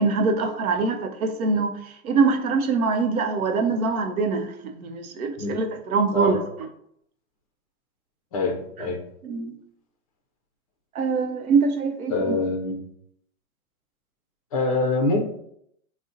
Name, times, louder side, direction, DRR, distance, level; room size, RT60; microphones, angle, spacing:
voice 1, 0.0-6.4 9.2-9.6 10.9-12.3, right 4 dB, 85° right, 5 dB, 0.7 m, -24 dB
voice 2, 8.3-9.0 12.1-12.8 14.5-15.2, left 2 dB, 30° left, 2 dB, 0.4 m, -24 dB
2.5 x 2.1 x 3.7 m, 0.71 s
hypercardioid pair, 145°, 42 cm